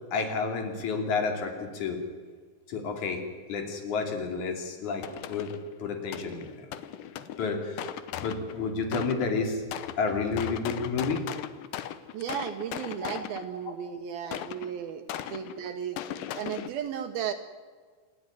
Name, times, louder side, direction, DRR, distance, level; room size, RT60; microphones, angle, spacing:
voice 1, 0.1-2.0 2.7-3.2 3.5-5.5 5.8-6.7 7.4-7.9 8.2-9.6 10.0-11.2, left 4 dB, 50° left, 5 dB, 3.9 m, -30 dB
sound 1, 5.0-5.8 6.1-9.4 9.7-13.6 14.3-16.7, left 11 dB, 75° left, 1.9 m, -38 dB
voice 2, 12.1-16.0 16.3-17.3, right 8 dB, 70° right, 7 dB, 2.7 m, -35 dB
27.0 x 13.0 x 9.9 m, 1.5 s
omnidirectional pair, 4.9 m